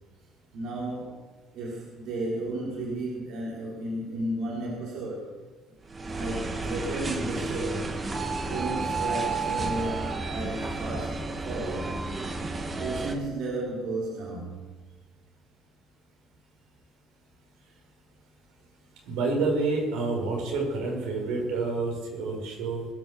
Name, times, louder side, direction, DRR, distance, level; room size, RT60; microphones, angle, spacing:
voice 1, 0.5-1.2 1.5-5.3 6.1-7.9 8.4-12.0 12.8-14.7, right 2 dB, 60° right, -4 dB, 3.8 m, -33 dB
sound 1, 5.9-13.2, right 3 dB, 20° right, 1.3 m, -31 dB
voice 2, 19.0-22.8, right 3 dB, 80° right, 0 dB, 5.1 m, -28 dB
21.5 x 7.5 x 7.2 m, 1.3 s
cardioid pair, 160°, 0 cm